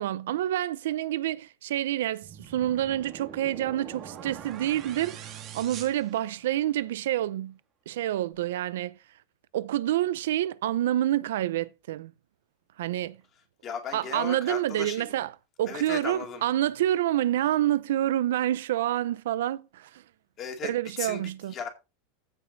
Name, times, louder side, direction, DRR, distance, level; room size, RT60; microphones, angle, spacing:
voice 1, 0.0-7.6 7.9-9.0 9.5-12.1 12.8-13.2 13.9-20.0 20.6-21.5, right 13 dB, 85° right, 0.6 m, -28 dB
sound 1, 2.2-6.8, right 8 dB, 30° right, 2.1 m, -43 dB
voice 2, 13.6-15.2 15.7-16.4 20.4-20.7 21.0-21.2 21.5-21.7, left 7 dB, 25° left, 2.5 m, -36 dB
15.0 x 5.2 x 4.0 m
supercardioid pair, 170°, 0 cm